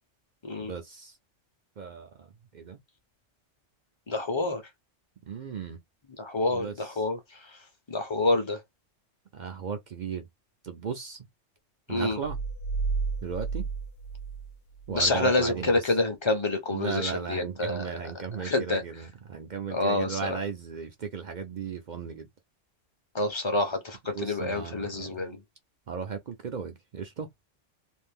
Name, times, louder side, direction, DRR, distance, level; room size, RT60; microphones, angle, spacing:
voice 1, 0.6-1.1 1.8-2.3 2.5-2.8 5.3-5.8 6.5-7.0 9.3-10.3 10.6-11.2 11.9-12.4 13.2-13.6 14.9-15.9 16.7-22.3 24.1-25.2 25.9-27.3, right 6 dB, 55° right, 0.5 m, -36 dB
voice 2, 4.1-4.6 6.2-7.2 7.9-8.6 11.9-12.2 14.9-17.9 18.4-18.8 19.7-20.4 23.1-25.4, left 2 dB, 30° left, 0.6 m, -27 dB
sound 1, 12.2-15.1, right 4 dB, 70° left, 0.9 m, -32 dB
2.6 x 2.5 x 3.5 m
omnidirectional pair, 1.3 m